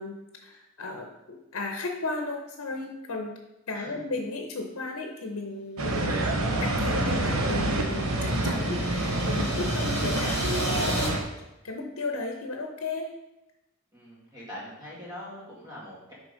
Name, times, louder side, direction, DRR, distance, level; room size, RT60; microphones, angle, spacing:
voice 1, 0.0-3.3 3.7-6.3 6.6-11.2 11.6-13.1, left 3 dB, 75° left, 3 dB, 0.8 m, -35 dB
sound 1, 5.8-11.2, right 2 dB, 80° right, 0.9 m, -27 dB
sound 2, 7.0-11.1, left 1 dB, 30° left, 1.8 m, -38 dB
voice 2, 13.9-16.1, left 1 dB, 20° right, -8 dB, 2.1 m, -42 dB
6.3 x 3.9 x 5.1 m, 0.95 s
head